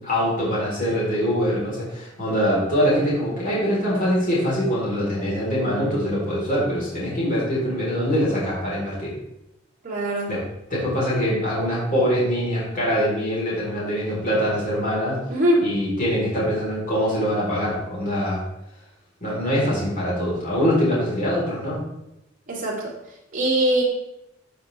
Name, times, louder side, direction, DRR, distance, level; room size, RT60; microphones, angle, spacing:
voice 1, 0.0-9.1 10.3-10.4 10.7-15.2 15.6-18.4 19.2-21.8, equal, 45° left, -7 dB, 4.0 m, -23 dB
voice 2, 9.8-10.3 15.3-15.7 22.5-22.9 23.3-23.8, right 1 dB, 45° right, -4 dB, 3.0 m, -22 dB
13.5 x 6.5 x 3.4 m, 0.89 s
head